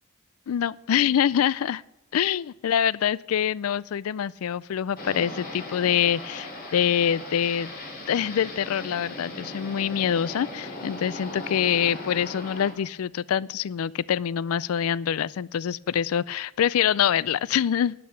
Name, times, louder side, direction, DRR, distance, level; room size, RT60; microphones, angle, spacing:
voice 1, 0.5-1.8 2.1-7.7 8.1-17.9, left 9 dB, 85° left, 22 dB, 0.4 m, -25 dB
sound 1, 4.9-12.7, left 1 dB, 45° left, 2.8 m, -38 dB
11.0 x 8.5 x 6.8 m, 0.95 s
head